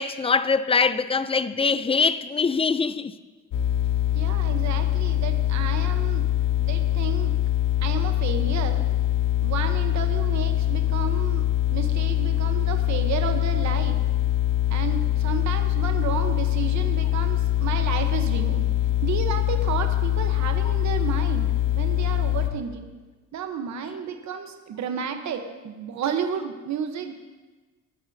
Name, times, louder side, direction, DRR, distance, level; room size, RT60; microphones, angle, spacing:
voice 1, 0.0-3.1, left 5 dB, 20° left, 0.5 m, -23 dB
sound 1, 3.5-22.5, left 13 dB, 85° left, 1.0 m, -23 dB
voice 2, 4.1-6.3 6.6-7.3 7.8-8.8 9.4-14.0 14.7-18.6 19.0-22.9 23.3-27.1, right 7 dB, 65° right, 1.1 m, -32 dB
19.5 x 12.0 x 2.8 m
cardioid pair, 90°, 30 cm